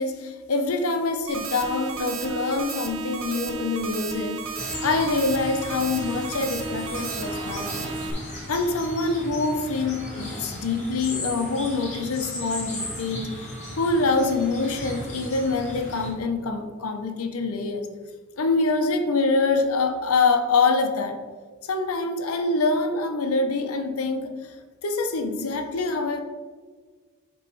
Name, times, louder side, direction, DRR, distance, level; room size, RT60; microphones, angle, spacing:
voice 1, 0.0-4.4 4.8-7.9 8.5-13.3 13.8-17.9 18.4-21.2 21.6-24.3 24.8-26.2, left 3 dB, 75° left, 6 dB, 0.7 m, -25 dB
sound 1, 1.3-8.1, right 4 dB, 60° right, 0.6 m, -33 dB
sound 2, 4.6-16.1, left 1 dB, 30° left, 1.6 m, -36 dB
7.8 x 3.1 x 4.5 m, 1.5 s
head